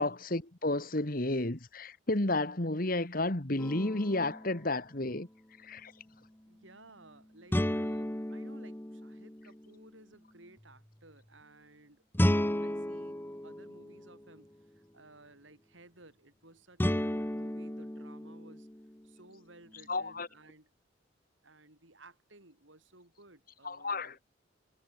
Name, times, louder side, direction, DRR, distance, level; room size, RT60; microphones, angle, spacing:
voice 1, 0.0-5.3 5.6-5.9 19.9-20.3 23.6-24.2, left 2 dB, 45° left, 1.9 m, -32 dB
sound 1, 3.6-4.5 7.5-9.7 12.1-14.3 16.8-19.0, left 1 dB, 10° left, 0.9 m, -33 dB
voice 2, 6.5-18.7 19.0-20.7 21.4-24.2, right 2 dB, 75° right, 6.5 m, -57 dB
head